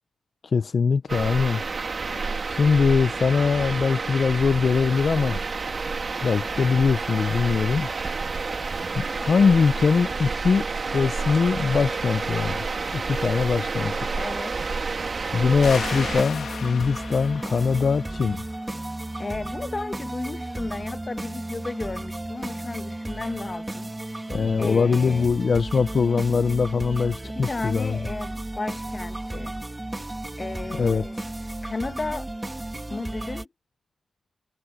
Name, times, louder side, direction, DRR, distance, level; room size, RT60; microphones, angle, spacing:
voice 1, 0.4-1.6 2.4-5.4 6.2-7.9 9.0-14.0 15.3-18.4 24.3-28.0 30.8-31.0, left 5 dB, 45° left, 0.5 m, -22 dB
sound 1, 1.1-16.2, right 4 dB, 35° right, 1.6 m, -29 dB
voice 2, 2.1-2.4 14.2-14.6 19.2-23.9 24.6-25.3 27.2-29.6 30.4-31.2 31.6-32.3 32.9-33.5, left 3 dB, 25° left, 1.2 m, -34 dB
sound 2, 15.6-19.0, left 6 dB, 65° left, 2.0 m, -36 dB
sound 3, 15.6-33.4, right 1 dB, 15° right, 1.9 m, -34 dB
wide cardioid pair, 180°, 0 cm